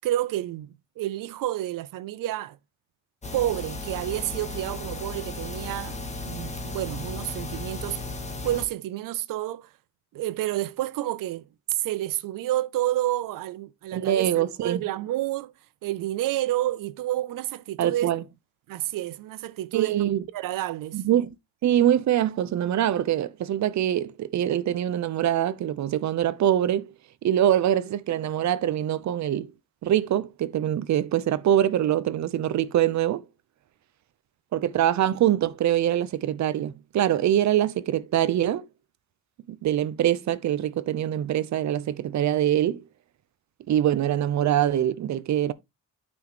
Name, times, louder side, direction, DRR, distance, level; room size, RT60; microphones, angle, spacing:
voice 1, 0.0-2.6 3.3-8.0 8.4-9.7 10.1-11.4 11.7-14.3 14.6-15.5 15.8-18.1 18.7-20.1 20.3-21.0, right 14 dB, 90° right, 0.6 m, -29 dB
sound 1, 3.2-8.6, left 2 dB, 20° left, 1.9 m, -35 dB
voice 2, 13.9-14.8 17.8-18.2 19.7-20.2 20.9-21.3 21.6-26.9 27.2-29.5 29.8-33.2 34.5-38.6 39.6-42.8 43.7-45.5, right 11 dB, 60° right, 0.8 m, -24 dB
9.2 x 6.2 x 3.1 m
cardioid pair, 160°, 32 cm